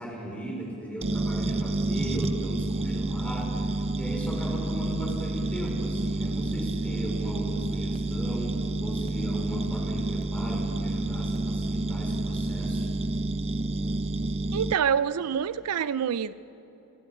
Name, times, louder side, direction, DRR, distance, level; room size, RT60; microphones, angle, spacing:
voice 1, 0.0-3.6 4.0-12.9, right 1 dB, 5° left, -2 dB, 4.3 m, -36 dB
sound 1, 1.0-14.7, right 2 dB, 25° right, 0.5 m, -29 dB
voice 2, 14.5-16.3, right 7 dB, 85° right, 16 dB, 0.4 m, -26 dB
27.5 x 12.5 x 8.5 m, 3.0 s
head